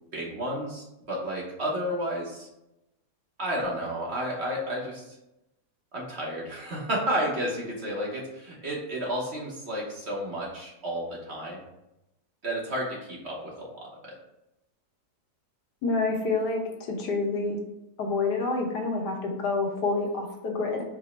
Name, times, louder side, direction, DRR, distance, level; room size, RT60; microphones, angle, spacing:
voice 1, 0.1-2.5 3.4-5.2 5.9-11.6 12.4-14.2, equal, 50° right, -3 dB, 1.0 m, -32 dB
voice 2, 15.8-16.6 16.9-17.6 18.0-20.8, left 3 dB, 90° left, 0 dB, 1.5 m, -27 dB
4.8 x 2.1 x 4.2 m, 0.89 s
omnidirectional pair, 1.7 m